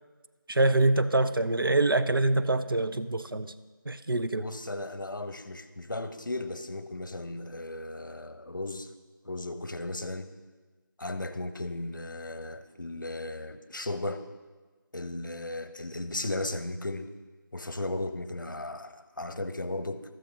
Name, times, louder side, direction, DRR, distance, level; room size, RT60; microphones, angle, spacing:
voice 1, 0.5-3.5 3.9-4.5, right 2 dB, 85° right, 12 dB, 0.7 m, -25 dB
voice 2, 4.4-8.9 9.2-10.3 11.0-14.2 14.9-17.1 17.5-20.0, left 2 dB, 65° left, 10 dB, 1.0 m, -36 dB
15.5 x 13.0 x 2.9 m, 1.3 s
figure-of-eight pair, 175°, 11 cm